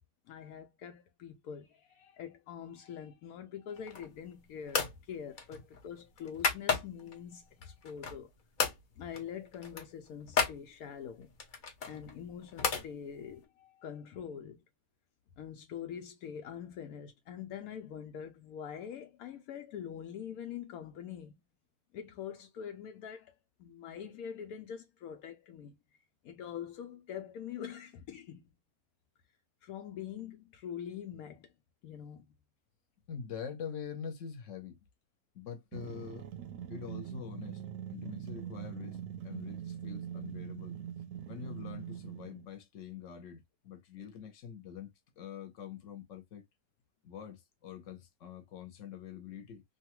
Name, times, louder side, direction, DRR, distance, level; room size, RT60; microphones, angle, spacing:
voice 1, 0.3-8.3 8.6-11.3 11.9-14.6 15.4-21.3 21.9-23.3 23.6-25.8 26.2-28.5 29.6-31.5 31.8-32.3, left 8 dB, 85° left, 1.1 m, -44 dB
sound 1, 3.8-4.2 4.7-5.0 5.4-7.1 7.6-8.3 8.6-8.8 9.1-9.3 9.5-10.6 11.4-12.9, left 5 dB, 45° left, 0.7 m, -33 dB
voice 2, 33.1-34.8 35.3-36.3 36.7-37.6 37.9-39.0 39.2-40.8 41.3-44.9 45.2-46.4 47.0-49.6, left 7 dB, 60° left, 1.2 m, -45 dB
sound 2, 35.7-42.5, right 9 dB, 70° right, 0.9 m, -42 dB
3.0 x 2.3 x 2.9 m
omnidirectional pair, 1.5 m